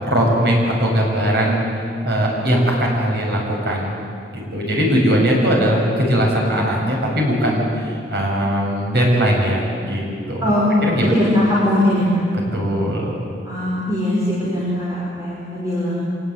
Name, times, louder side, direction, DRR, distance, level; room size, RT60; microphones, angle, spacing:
voice 1, 0.0-1.6 2.0-4.0 4.3-10.5 10.8-11.1 12.5-13.1, equal, 65° right, -2 dB, 7.3 m, -19 dB
voice 2, 10.4-12.3 13.4-16.0, left 1 dB, 20° right, -7 dB, 5.3 m, -20 dB
25.5 x 19.0 x 9.6 m, 2.4 s
head